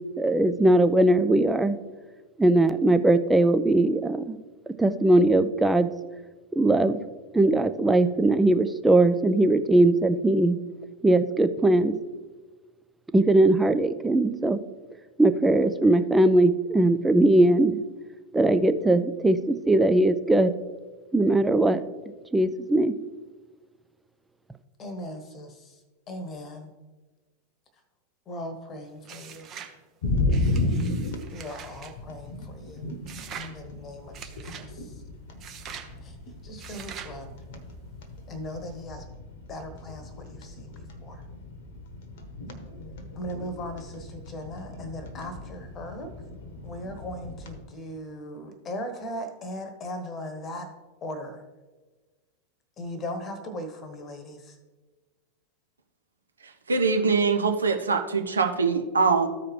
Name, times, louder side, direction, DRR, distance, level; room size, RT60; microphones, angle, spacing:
voice 1, 0.2-1.8 2.4-4.4 4.8-5.9 6.6-7.0 7.3-10.6 11.0-11.9 13.1-14.6 15.2-17.8 18.3-20.5 21.1-21.8 22.3-22.9, right 2 dB, 10° right, 10 dB, 0.4 m, -20 dB
voice 2, 24.8-25.8 26.1-26.7 28.3-29.5 31.3-32.9 33.3-35.0 36.0-36.2 36.4-37.3 38.3-39.0 39.5-41.2 43.1-46.1 46.6-50.7 51.0-51.4 52.8-54.6, left 1 dB, 25° left, 8 dB, 1.1 m, -38 dB
sound 1, 29.0-29.8 30.3-31.9 33.1-33.5 34.1-34.7 35.4-35.9 36.6-37.2, right 8 dB, 30° right, 0.8 m, -42 dB
sound 2, 30.0-47.6, left 2 dB, 55° left, 1.0 m, -34 dB
voice 3, 56.7-59.3, right 4 dB, 75° right, 4 dB, 0.8 m, -23 dB
14.0 x 4.8 x 3.2 m, 1.3 s
figure-of-eight pair, 90°, 0 cm